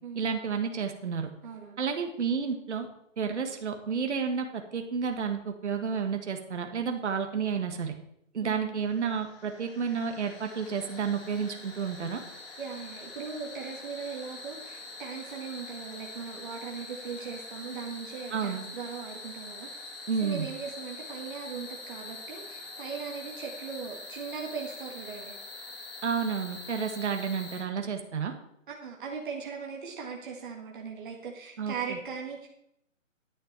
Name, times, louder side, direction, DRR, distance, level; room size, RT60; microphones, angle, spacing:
voice 1, 0.1-1.3 1.8-2.9 3.2-7.9 8.3-12.2 18.3-18.6 20.1-20.5 26.0-28.3 31.6-32.0, right 6 dB, 60° right, 5 dB, 1.6 m, -31 dB
voice 2, 1.4-1.8 8.4-8.9 12.6-19.7 20.2-25.3 28.7-32.5, right 6 dB, 40° right, -1 dB, 1.8 m, -39 dB
sound 1, 8.9-27.6, left 3 dB, 45° left, 3.7 m, -44 dB
10.5 x 8.7 x 4.5 m, 0.77 s
hypercardioid pair, 165°, 40 cm